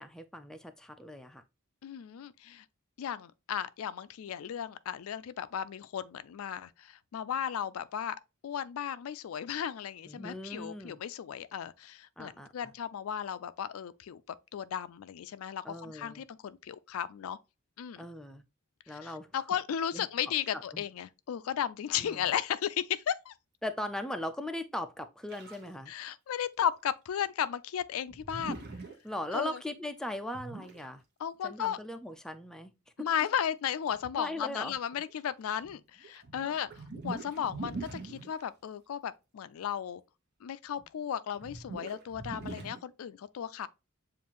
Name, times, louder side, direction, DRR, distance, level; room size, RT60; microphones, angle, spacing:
voice 1, 0.0-1.4 10.1-11.0 12.2-12.7 15.6-16.3 18.0-18.4 18.9-19.3 19.9-20.1 20.5-20.9 22.0-22.3 23.6-25.9 29.0-31.0 31.4-32.7 34.1-34.8 36.4-36.5, left 1 dB, 5° left, 0.3 m, -39 dB
voice 2, 1.8-2.6 3.0-8.2 8.4-14.2 14.5-17.4 17.8-18.1 18.9-23.3 25.9-28.6 29.3-29.6 31.2-31.8 33.0-40.0 40.4-43.7, left 9 dB, 80° left, 0.4 m, -35 dB
sound 1, 25.3-25.8 26.0-26.1 26.4-26.5 26.7-26.8 28.1-28.9 30.3-30.9 33.1-33.2 33.9-34.0 34.6-35.2 35.6-38.5 40.8-40.9 41.3-42.8, right 3 dB, 50° right, 1.1 m, -43 dB
7.2 x 2.5 x 2.9 m
head